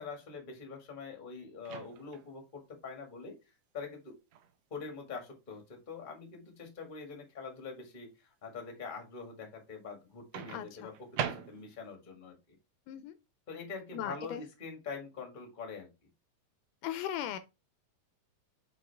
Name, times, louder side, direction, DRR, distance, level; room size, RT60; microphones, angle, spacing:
voice 1, 0.0-3.4 3.7-4.1 4.7-12.6 13.5-15.9, left 4 dB, 25° left, 1.1 m, -44 dB
Microwave oven, 1.6-2.3 4.3-4.5 10.3-12.0, right 9 dB, 80° right, 1.4 m, -40 dB
voice 2, 10.5-10.9 12.9-13.2 13.9-14.4 16.8-17.4, left 11 dB, 80° left, 2.0 m, -37 dB
6.3 x 4.5 x 3.4 m
omnidirectional pair, 3.8 m